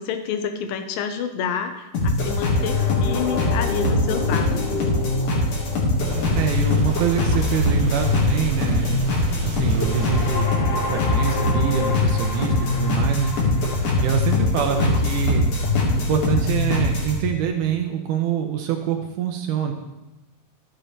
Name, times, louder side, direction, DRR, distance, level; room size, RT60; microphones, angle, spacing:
voice 1, 0.0-4.8, left 7 dB, 85° left, 8 dB, 2.4 m, -28 dB
sound 1, 1.9-17.2, left 2 dB, 65° left, 3.2 m, -22 dB
sound 2, 6.0-10.4, right 3 dB, 50° right, 3.3 m, -31 dB
voice 2, 6.3-13.3 14.0-15.5 16.0-19.7, right 8 dB, 75° right, 4 dB, 2.0 m, -25 dB
12.5 x 7.6 x 3.3 m, 0.99 s
omnidirectional pair, 4.1 m